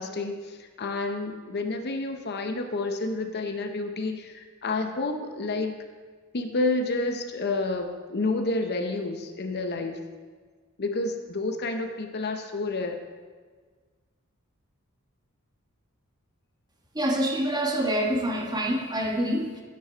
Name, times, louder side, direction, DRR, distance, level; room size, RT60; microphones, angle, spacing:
voice 1, 0.0-5.7 6.3-10.0 10.8-13.0, left 2 dB, 50° left, 6 dB, 0.8 m, -29 dB
voice 2, 16.9-19.6, right 1 dB, 20° right, 1 dB, 1.3 m, -26 dB
9.9 x 9.4 x 4.5 m, 1.5 s
head